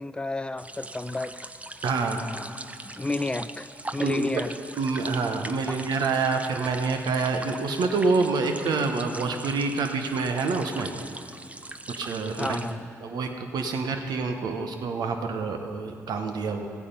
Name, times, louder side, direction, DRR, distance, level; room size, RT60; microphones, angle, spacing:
voice 1, 0.0-1.5 2.1-2.6 2.8-4.5 5.6-5.8 12.4-12.9, left 2 dB, 15° left, 12 dB, 0.5 m, -32 dB
sound 1, 0.6-12.7, right 2 dB, 20° right, 0.7 m, -41 dB
voice 2, 1.8-2.3 4.0-4.4 4.8-10.9 11.9-12.6 13.0-16.7, right 4 dB, 65° right, 5 dB, 1.1 m, -27 dB
16.0 x 8.4 x 5.4 m, 2.4 s
hypercardioid pair, 40°, 7 cm